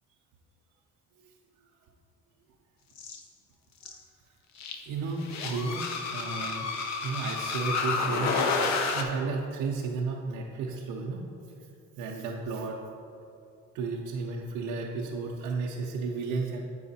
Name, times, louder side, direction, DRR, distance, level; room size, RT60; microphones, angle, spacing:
sound 1, 3.0-3.2 3.8-3.9 4.6-4.8 5.2-9.0, left 4 dB, 60° left, 0.8 m, -30 dB
voice 1, 4.8-5.8 6.1-6.7 7.0-8.6 8.9-11.3 12.0-12.8 13.7-16.6, right 4 dB, 85° right, -2 dB, 0.7 m, -33 dB
8.6 x 4.9 x 4.2 m, 2.6 s
cardioid pair, 105°, 31 cm